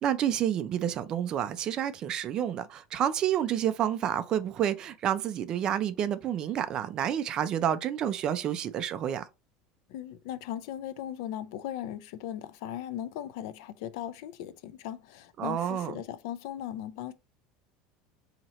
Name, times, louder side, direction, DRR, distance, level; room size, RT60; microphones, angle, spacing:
voice 1, 0.0-9.2 15.4-16.0, right 10 dB, 30° right, 0.3 m, -29 dB
voice 2, 9.9-17.1, left 11 dB, 65° left, 0.4 m, -38 dB
4.2 x 2.8 x 2.9 m
cardioid pair, 175°, 3 cm